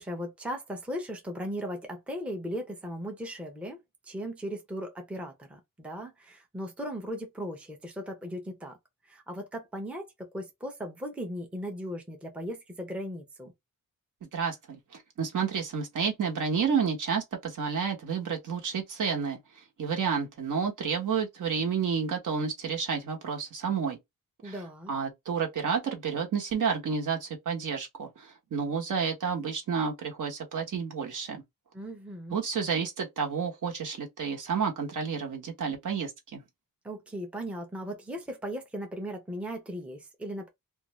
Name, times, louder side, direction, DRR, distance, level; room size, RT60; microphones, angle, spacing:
voice 1, 0.0-3.8 4.0-8.8 9.1-13.5 24.4-24.9 31.7-32.4 36.8-40.5, equal, 5° right, 0.6 m, -37 dB
voice 2, 14.2-14.8 15.2-19.4 19.8-24.0 24.4-24.6 24.9-31.4 32.3-36.4, right 6 dB, 65° right, 1.0 m, -30 dB
2.5 x 2.3 x 3.0 m
wide cardioid pair, 145°, 33 cm